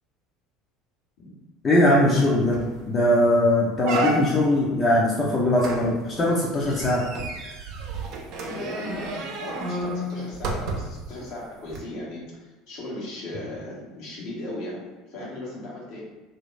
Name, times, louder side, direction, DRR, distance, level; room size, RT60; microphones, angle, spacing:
voice 1, 1.6-2.6 2.9-7.0, left 1 dB, 30° left, -5 dB, 0.8 m, -20 dB
sound 1, 2.1-2.2 2.5-2.8 3.2-3.3 3.8-4.6 5.6-11.1 11.7-11.8, right 2 dB, 60° right, 0.7 m, -31 dB
voice 2, 8.5-16.0, left 1 dB, 65° left, -4 dB, 1.2 m, -37 dB
2.9 x 2.7 x 3.3 m, 1.2 s
hypercardioid pair, 75°, 0 cm